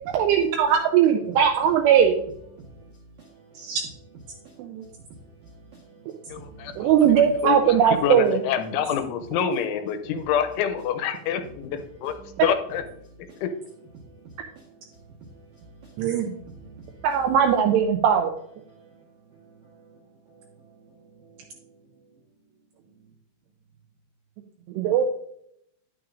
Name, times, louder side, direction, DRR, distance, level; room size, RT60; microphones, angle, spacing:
voice 1, 0.1-2.2 3.6-3.8 4.6-4.8 6.8-8.4 16.0-16.3 17.0-18.3 24.8-25.0, right 8 dB, 90° right, 2.4 m, -20 dB
voice 2, 2.1-3.8 4.3-7.1 12.1-12.4 13.3-13.4 14.0-17.2 17.5-17.6 18.7-19.1 19.3-21.7, right 3 dB, 70° right, 1.8 m, -49 dB
voice 3, 6.3-11.7 12.0-12.2 12.4-12.8, left 8 dB, 80° left, 3.0 m, -27 dB
10.5 x 9.0 x 2.5 m
omnidirectional pair, 5.5 m